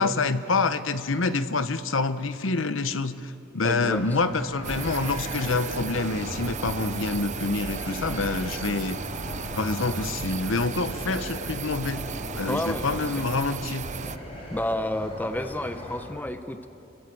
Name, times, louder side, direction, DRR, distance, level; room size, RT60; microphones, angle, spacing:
voice 1, 0.0-9.0 9.6-12.0 12.3-13.9, left 3 dB, 70° left, 12 dB, 1.0 m, -27 dB
voice 2, 3.6-4.0 12.5-13.3 14.5-16.7, left 1 dB, 10° left, 8 dB, 0.8 m, -30 dB
sound 1, 3.7-16.1, left 1 dB, 30° left, 4.6 m, -39 dB
sound 2, 4.6-14.2, right 5 dB, 35° right, 0.5 m, -35 dB
28.5 x 22.0 x 7.9 m, 3.0 s
head